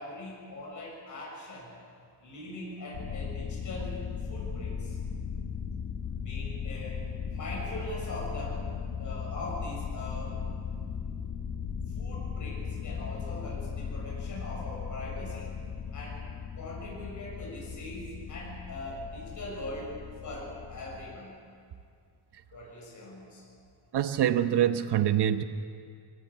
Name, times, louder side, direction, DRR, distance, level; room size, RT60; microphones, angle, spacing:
voice 1, 0.0-1.7 2.2-4.0 4.3-5.0 6.2-7.0 7.3-8.7 9.0-10.4 11.9-15.5 15.9-16.2 16.6-21.4 22.5-23.5, left 1 dB, 45° left, -4 dB, 6.9 m, -41 dB
sound 1, 2.9-21.2, left 6 dB, 70° left, 1.7 m, -37 dB
voice 2, 23.9-25.4, right 10 dB, 70° right, 10 dB, 1.1 m, -25 dB
23.5 x 15.5 x 8.5 m, 2.2 s
cardioid pair, 130°, 41 cm